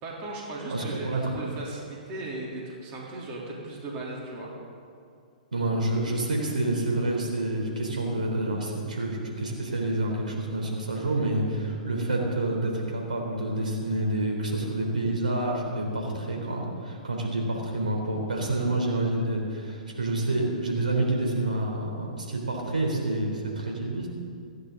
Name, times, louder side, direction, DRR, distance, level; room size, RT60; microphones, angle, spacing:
voice 1, 0.0-4.5, right 2 dB, 30° right, -4 dB, 3.3 m, -37 dB
voice 2, 0.7-1.3 5.5-24.1, right 2 dB, 70° right, -1 dB, 3.6 m, -28 dB
28.5 x 10.5 x 3.9 m, 2.4 s
figure-of-eight pair, 110°, 4 cm